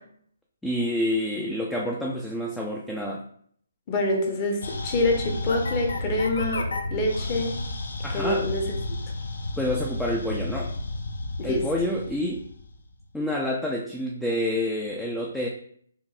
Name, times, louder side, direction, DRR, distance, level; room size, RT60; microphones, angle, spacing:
voice 1, 0.6-3.2 8.0-8.4 9.6-10.7 11.4-12.4 13.1-15.5, left 1 dB, 5° left, -2 dB, 0.3 m, -28 dB
voice 2, 3.9-7.6 8.1-9.0 11.4-11.7, left 2 dB, 30° left, 2 dB, 0.8 m, -26 dB
sound 1, 4.6-13.2, left 2 dB, 60° left, 0.5 m, -32 dB
4.5 x 2.6 x 2.4 m, 0.62 s
figure-of-eight pair, 135°, 0 cm